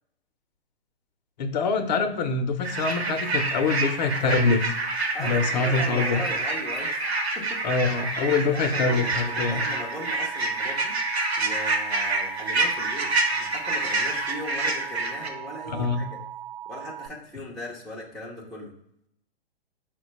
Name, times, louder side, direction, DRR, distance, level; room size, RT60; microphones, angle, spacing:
voice 1, 1.4-4.8 5.2-6.2 7.6-9.6 15.7-16.0, left 4 dB, 45° left, 7 dB, 0.6 m, -25 dB
sound 1, 2.6-15.3, right 3 dB, 90° right, 0.9 m, -27 dB
voice 2, 5.1-7.6 8.4-11.0 11.4-16.2 16.7-18.7, left 1 dB, ahead, -6 dB, 0.4 m, -38 dB
Alarm, 8.9-17.1, right 11 dB, 70° right, 0.6 m, -39 dB
4.2 x 2.2 x 4.0 m, 0.75 s
figure-of-eight pair, 125°, 31 cm